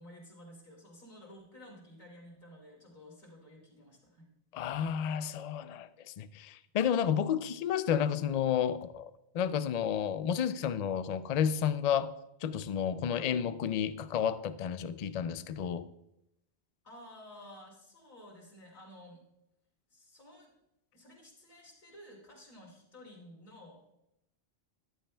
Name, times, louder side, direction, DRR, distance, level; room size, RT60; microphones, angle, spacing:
voice 1, 0.0-4.3 13.1-13.3 16.8-19.2 19.9-20.5 20.9-23.8, left 1 dB, 40° left, 2.7 m, -53 dB
voice 2, 4.5-12.1 12.4-15.9, left 8 dB, 60° left, 0.4 m, -31 dB
13.0 x 10.5 x 2.2 m
omnidirectional pair, 1.2 m